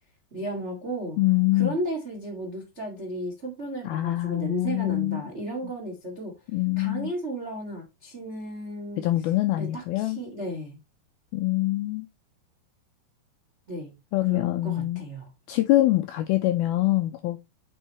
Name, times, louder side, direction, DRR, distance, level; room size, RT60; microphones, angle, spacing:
voice 1, 0.3-1.2 1.5-6.3 6.8-9.0 9.6-10.8 13.7-13.9 14.3-15.3, right 1 dB, 80° right, 0.6 m, -34 dB
voice 2, 1.2-1.8 3.9-5.3 6.5-7.1 9.0-10.2 11.3-12.1 14.1-15.0 15.5-17.4, left 17 dB, 85° left, 2.1 m, -24 dB
8.9 x 5.6 x 3.1 m
omnidirectional pair, 5.0 m